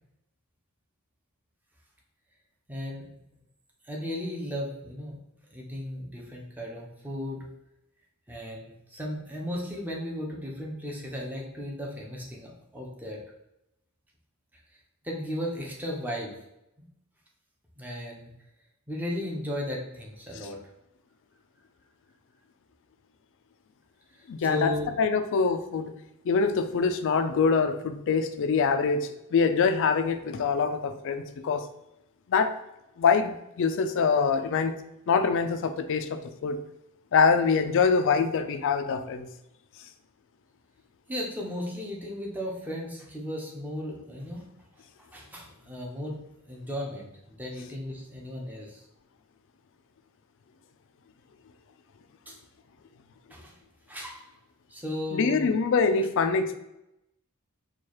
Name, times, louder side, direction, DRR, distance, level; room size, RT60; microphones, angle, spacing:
voice 1, 2.7-3.1 3.8-5.1 5.5-7.5 8.3-13.2 15.0-16.3 16.8-16.9 17.8-18.3 18.9-20.6 24.1-25.0 41.1-44.4 45.0-46.2 46.5-48.8 52.3-52.4 53.3-53.5 53.9-54.3 54.7-55.5, left 1 dB, 10° right, -2 dB, 0.7 m, -35 dB
voice 2, 24.3-25.9 26.3-31.7 32.3-32.5 33.0-34.8 35.1-36.6 37.1-39.3 55.1-56.6, left 5 dB, 60° left, 9 dB, 0.3 m, -24 dB
4.5 x 2.3 x 3.0 m, 0.86 s
head